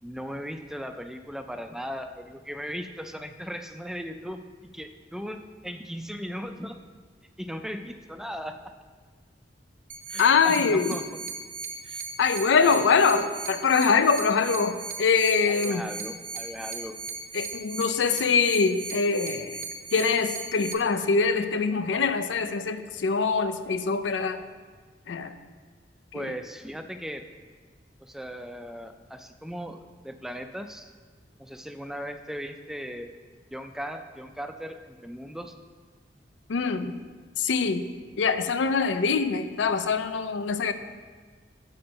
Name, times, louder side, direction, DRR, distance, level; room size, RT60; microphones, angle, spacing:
voice 1, 0.0-4.4 4.7-6.8 7.4-8.7 10.1-11.1 11.8-12.1 12.6-13.3 15.5-17.0 26.1-27.3 28.0-30.9 31.4-33.1 33.5-35.6, equal, 5° right, 7 dB, 0.3 m, -37 dB
sound 1, 9.9-20.7, right 4 dB, 45° right, 0.6 m, -37 dB
voice 2, 10.2-10.9 12.2-15.9 17.3-19.6 19.9-24.4 25.1-25.3 26.1-26.3 36.5-36.9 37.4-37.9 38.2-40.7, left 5 dB, 80° left, 10 dB, 0.4 m, -24 dB
6.2 x 4.4 x 6.4 m, 1.5 s
head